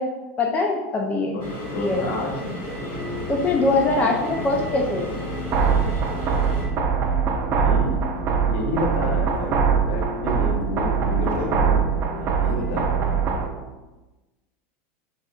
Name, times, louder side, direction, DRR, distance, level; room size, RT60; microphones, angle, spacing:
voice 1, 0.0-1.4 1.7-2.0 3.3-5.1, left 3 dB, 20° left, 1 dB, 0.5 m, -23 dB
voice 2, 1.3-2.6 7.5-8.0 8.4-9.5 9.9-11.8 12.1-13.0, left 2 dB, 75° left, 0 dB, 1.1 m, -30 dB
sound 1, 1.4-6.7, left 1 dB, 40° left, 1.5 m, -33 dB
sound 2, 2.7-13.5, equal, 15° right, 1.0 m, -34 dB
sound 3, 5.5-13.5, right 6 dB, 35° right, 0.6 m, -22 dB
5.8 x 3.7 x 2.4 m, 1.1 s
supercardioid pair, 145°, 7 cm